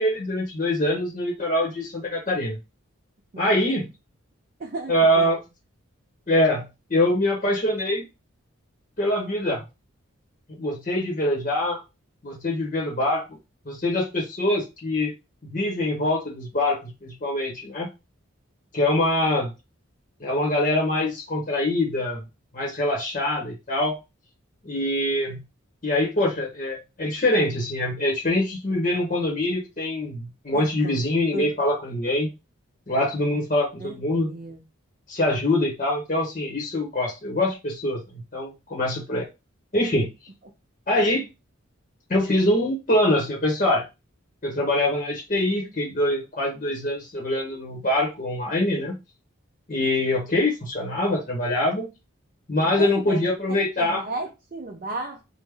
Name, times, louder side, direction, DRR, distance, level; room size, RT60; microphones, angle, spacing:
voice 1, 0.0-2.6 3.4-3.9 4.9-5.4 6.3-8.0 9.0-9.6 10.6-11.8 12.2-13.2 13.7-15.1 15.5-17.9 18.7-19.5 20.2-22.2 22.5-24.0 24.6-25.4 25.8-32.3 32.9-34.3 35.1-38.0 38.3-39.3 39.7-40.1 40.9-41.3 42.1-43.8 44.4-49.0 49.7-51.9 52.5-54.1, left 1 dB, 35° left, -2 dB, 0.8 m, -24 dB
voice 2, 4.6-5.3 30.5-31.0 31.3-31.5 33.8-33.9 34.2-34.6 52.8-53.2 53.5-55.2, right 2 dB, 40° right, 2 dB, 0.4 m, -33 dB
3.3 x 2.1 x 3.4 m, 0.26 s
head